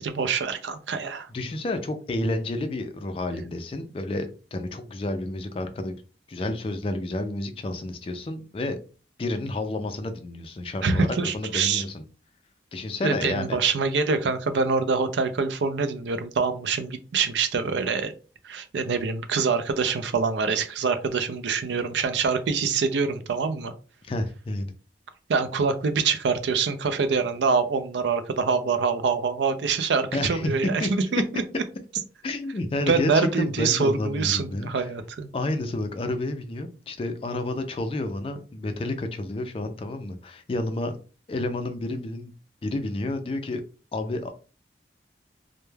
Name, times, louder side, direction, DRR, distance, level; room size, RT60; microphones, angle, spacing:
voice 1, 0.0-1.3 10.8-11.8 13.0-18.1 18.4-23.7 25.3-31.6 32.9-35.3, right 5 dB, 80° right, 0.4 m, -25 dB
voice 2, 1.3-6.0 6.3-8.8 9.2-12.0 12.7-13.6 24.0-24.7 30.1-30.9 32.2-34.7 35.3-41.0 41.3-42.3 42.6-43.6 43.9-44.4, left 2 dB, 30° left, 0.3 m, -30 dB
2.2 x 2.1 x 3.1 m
head